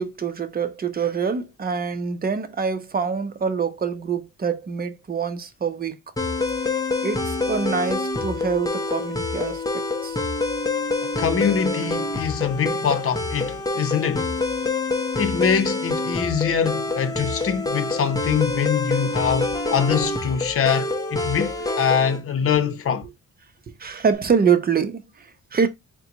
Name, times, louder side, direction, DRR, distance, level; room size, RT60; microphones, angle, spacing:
voice 1, 0.0-6.0 7.0-10.2 23.8-25.7, right 6 dB, 30° right, 0.8 m, -25 dB
sound 1, 6.2-22.2, left 3 dB, 10° left, 0.8 m, -26 dB
voice 2, 11.2-14.3 15.2-23.1, left 7 dB, 50° left, 0.9 m, -23 dB
4.2 x 2.3 x 3.9 m
cardioid pair, 90°, 30 cm